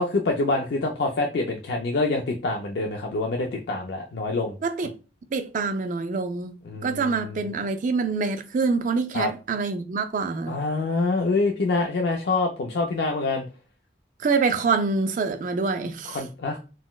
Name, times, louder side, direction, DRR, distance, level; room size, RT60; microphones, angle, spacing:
voice 1, 0.0-4.6 6.6-7.4 9.1-9.3 10.5-13.5 16.1-16.6, left 3 dB, 65° left, 0.4 m, -26 dB
voice 2, 5.3-6.5 6.8-10.6 14.2-16.2, right 4 dB, 45° right, 0.3 m, -25 dB
3.9 x 2.1 x 2.3 m
head